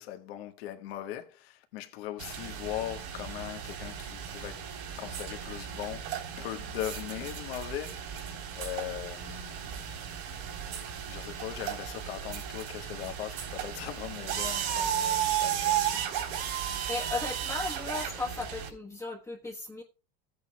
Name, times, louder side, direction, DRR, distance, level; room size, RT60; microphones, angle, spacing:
voice 1, 0.0-4.6 5.0-9.8 11.0-16.0, left 13 dB, 85° left, 1.5 m, -40 dB
sound 1, 2.2-18.7, right 9 dB, 70° right, 3.8 m, -35 dB
voice 2, 16.9-19.8, left 3 dB, 10° left, 1.3 m, -36 dB
15.5 x 8.7 x 2.3 m
supercardioid pair, 135°, 30 cm